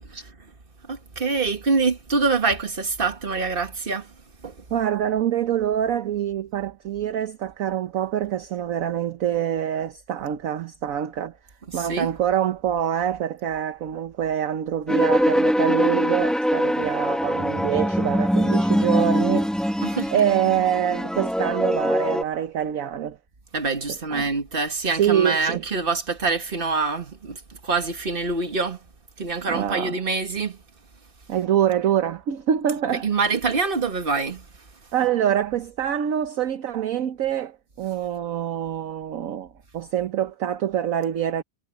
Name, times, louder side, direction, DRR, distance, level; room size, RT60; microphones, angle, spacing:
voice 1, 0.9-4.1 4.4-4.5 11.7-12.1 19.8-20.3 23.5-28.8 29.2-30.6 32.9-34.4, right 4 dB, 30° right, 1.8 m, -25 dB
voice 2, 4.7-11.4 11.7-23.2 23.9-24.3 24.9-25.6 29.5-30.0 31.3-33.1 33.3-33.4 34.9-41.4, right 10 dB, 55° right, 1.0 m, -25 dB
sound 1, 14.9-22.2, equal, ahead, 1.2 m, -23 dB
omnidirectional pair, 2.1 m